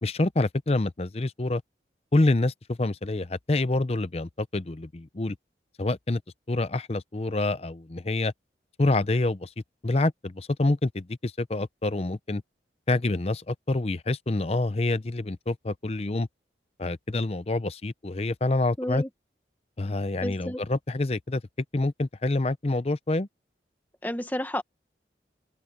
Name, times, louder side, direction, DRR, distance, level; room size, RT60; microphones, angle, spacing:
voice 1, 0.0-1.6 2.1-5.4 5.8-6.2 6.5-8.3 8.8-9.5 9.8-12.4 12.9-16.3 16.8-19.0 19.8-21.4 21.7-23.3, left 2 dB, 35° left, 0.6 m, -27 dB
voice 2, 18.8-19.1 20.2-20.6 24.0-24.6, left 1 dB, 10° left, 1.2 m, -31 dB
open air
head